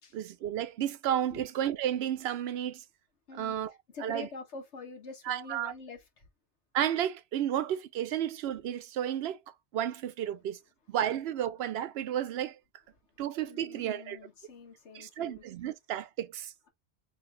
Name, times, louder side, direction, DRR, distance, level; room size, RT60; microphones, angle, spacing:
voice 1, 0.1-2.8 3.3-3.7 4.0-4.3 5.3-5.7 6.7-9.4 9.7-10.6 10.9-12.6 13.2-14.2 14.9-16.5, right 10 dB, 70° right, 0.8 m, -32 dB
voice 2, 3.9-6.3 13.4-15.4, left 4 dB, 80° left, 1.6 m, -46 dB
3.8 x 2.8 x 3.2 m
omnidirectional pair, 1.2 m